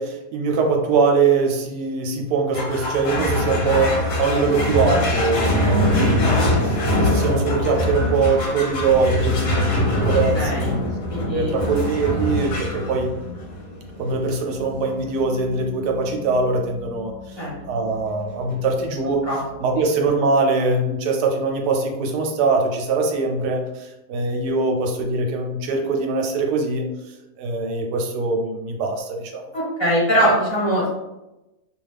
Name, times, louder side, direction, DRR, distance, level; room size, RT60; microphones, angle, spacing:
voice 1, 0.0-10.8 11.3-13.1 14.0-19.2 19.6-26.8 27.4-29.4, right 4 dB, 75° right, 2 dB, 1.1 m, -22 dB
sound 1, 2.5-19.3, left 1 dB, 75° left, 1.3 m, -24 dB
voice 2, 5.7-6.1 10.0-10.1 10.3-10.7 11.1-11.5 17.4-17.6 19.3-19.4 29.5-30.9, equal, 20° left, -7 dB, 1.1 m, -21 dB
2.7 x 2.4 x 3.2 m, 0.97 s
omnidirectional pair, 1.8 m